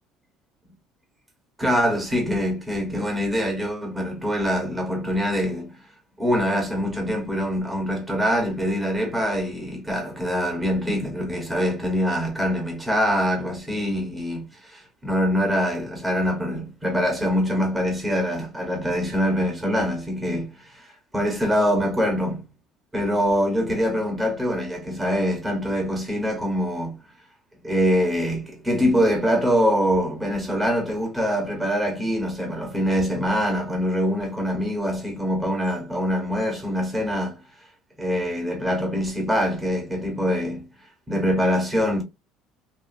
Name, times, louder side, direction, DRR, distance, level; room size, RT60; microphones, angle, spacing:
voice 1, 1.6-5.8 6.2-22.4 22.9-27.0 27.6-37.4 38.0-40.7 41.1-42.0, equal, 5° right, 1.0 m, -24 dB
2.9 x 2.5 x 2.5 m
cardioid pair, 150°, 0 cm